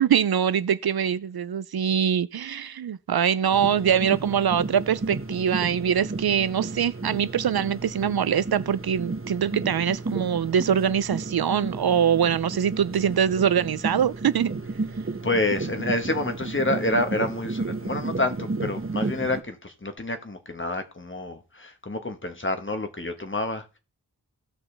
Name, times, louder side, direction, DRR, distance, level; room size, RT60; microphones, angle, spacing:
voice 1, 0.0-14.5, right 8 dB, 70° right, 0.5 m, -23 dB
sound 1, 3.5-19.4, right 3 dB, 35° right, 0.9 m, -33 dB
voice 2, 15.2-23.8, left 2 dB, 30° left, 1.3 m, -28 dB
16.5 x 6.1 x 3.3 m
wide cardioid pair, 45°, 39 cm